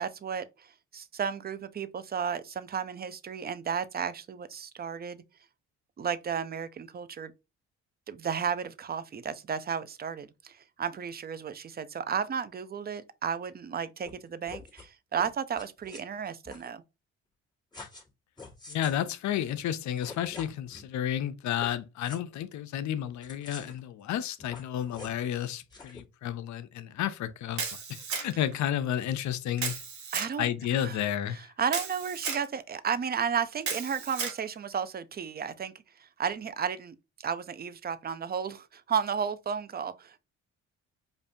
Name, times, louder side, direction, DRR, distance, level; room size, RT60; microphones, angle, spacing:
voice 1, 0.0-5.2 6.0-7.3 8.1-16.8 30.1-31.0 31.3-35.7 36.0-40.2, right 7 dB, 30° right, 0.6 m, -33 dB
sound 1, 14.0-14.1 14.4-14.9 15.1-16.0 16.4-16.7 17.7-18.1 18.4-19.0 19.7-19.8 19.9-20.9 21.6-21.7 22.0-22.2 23.2-23.8 24.4-25.2 25.7-26.0, left 3 dB, 15° left, 1.6 m, -46 dB
voice 2, 18.7-27.6 27.9-29.8 30.4-31.5, left 10 dB, 70° left, 0.6 m, -31 dB
Camera, 27.6-28.5 29.6-30.3 31.7-32.4 33.6-34.4, right 6 dB, 70° right, 1.4 m, -34 dB
5.2 x 2.5 x 2.6 m
cardioid pair, 90°, 30 cm